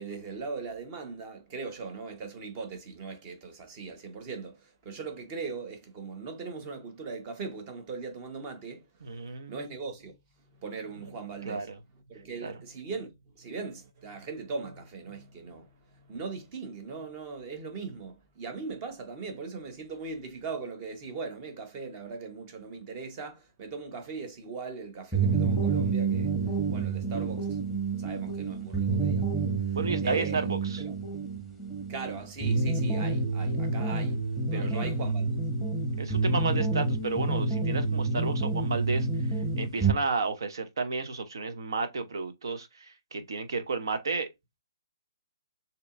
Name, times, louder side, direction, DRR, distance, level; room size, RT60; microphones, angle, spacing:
voice 1, 0.0-9.1 9.5-10.2 10.4-11.7 12.1-26.3 26.7-27.6 28.0-29.4 29.7-29.8 30.0-30.5 30.8-31.1 31.9-34.2 34.5-35.3, right 4 dB, 30° right, 1.2 m, -39 dB
voice 2, 9.0-9.7 11.4-11.8 12.4-12.6 29.7-30.8 34.5-34.8 36.0-39.1 39.6-44.3, right 4 dB, 65° right, 0.9 m, -32 dB
sound 1, 25.1-39.9, right 3 dB, 5° right, 1.3 m, -28 dB
6.7 x 2.9 x 2.6 m
figure-of-eight pair, 130°, 2 cm